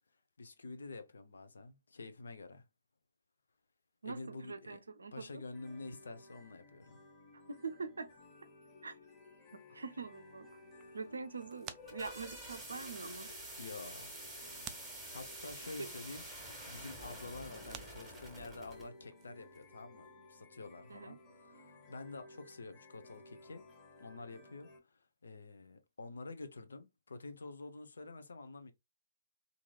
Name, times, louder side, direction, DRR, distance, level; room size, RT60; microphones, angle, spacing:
voice 1, 0.4-2.6 4.0-4.8 5.1-7.0 11.0-11.1 13.6-14.1 15.1-23.6 24.0-28.7, left 3 dB, 75° left, 0.6 m, -48 dB
voice 2, 4.0-5.4 7.5-8.1 8.8-9.0 9.7-10.5 10.9-13.3 15.8-15.9 20.9-21.2, right 4 dB, 80° right, 0.5 m, -44 dB
sound 1, 5.5-24.8, left 2 dB, 30° left, 0.9 m, -58 dB
sound 2, 10.1-19.7, right 10 dB, 25° right, 0.3 m, -57 dB
sound 3, 11.6-18.9, right 1 dB, 5° right, 1.4 m, -48 dB
3.0 x 2.6 x 2.2 m
figure-of-eight pair, 130°, 0 cm